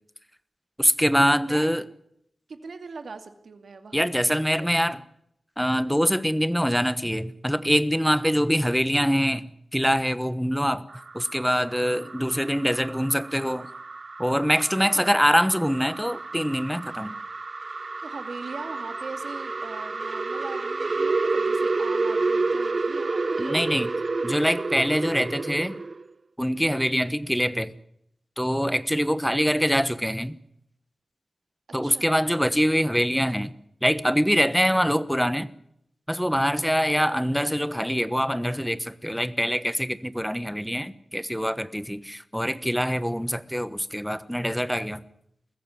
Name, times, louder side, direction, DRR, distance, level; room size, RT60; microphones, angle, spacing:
voice 1, 0.8-1.8 3.9-5.0 5.6-10.9 11.1-13.7 14.2-17.1 23.4-23.9 24.2-25.8 26.4-27.7 28.4-30.4 31.7-33.5 33.8-35.5 36.1-45.0, equal, ahead, 14 dB, 1.1 m, -24 dB
voice 2, 2.5-4.7 14.8-15.1 18.0-23.9 31.8-32.1, right 4 dB, 90° right, 7 dB, 2.4 m, -41 dB
sound 1, 10.9-26.0, right 3 dB, 45° right, 0.9 m, -30 dB
22.0 x 15.0 x 9.8 m, 0.74 s
wide cardioid pair, 115°, 0 cm